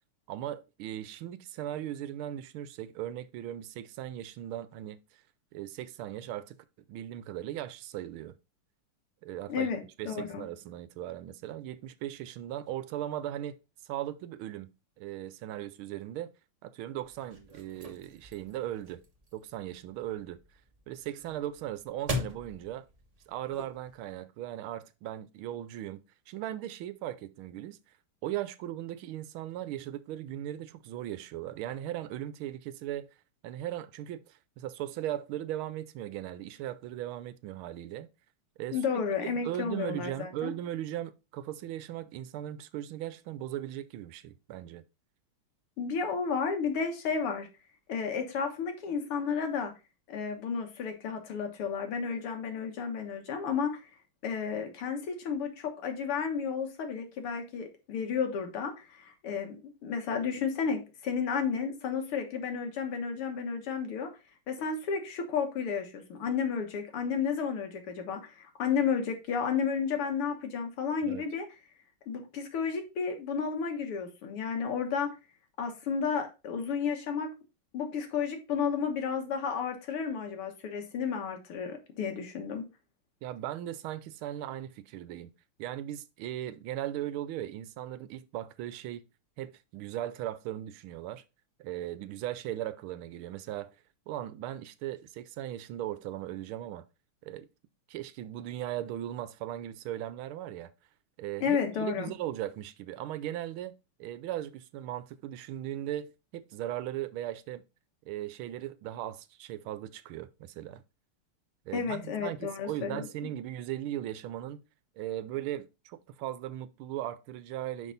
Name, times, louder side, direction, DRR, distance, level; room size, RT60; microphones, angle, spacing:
voice 1, 0.3-5.0 5.5-6.6 6.9-8.3 9.2-9.7 10.0-13.6 13.9-14.7 15.0-16.3 16.6-19.0 19.3-20.4 20.9-22.8 23.3-27.8 28.2-33.1 33.4-38.1 38.6-44.8 71.0-71.3 83.2-85.3 85.6-89.0 89.4-91.2 91.6-93.7 94.1-96.8 97.2-97.5 97.9-100.7 101.2-107.6 108.1-110.8 111.7-114.6 115.0-117.9, right 12 dB, 80° right, 1.4 m, -38 dB
voice 2, 9.5-10.4 38.7-40.5 45.8-47.5 47.9-49.7 50.1-53.8 54.2-59.6 59.8-64.1 64.5-71.5 72.1-75.2 75.6-77.3 77.7-82.6 101.4-102.1 111.7-113.1, left 6 dB, 80° left, 2.2 m, -32 dB
sound 1, 17.0-24.1, left 1 dB, 50° right, 0.4 m, -42 dB
6.0 x 5.4 x 3.9 m
omnidirectional pair, 2.4 m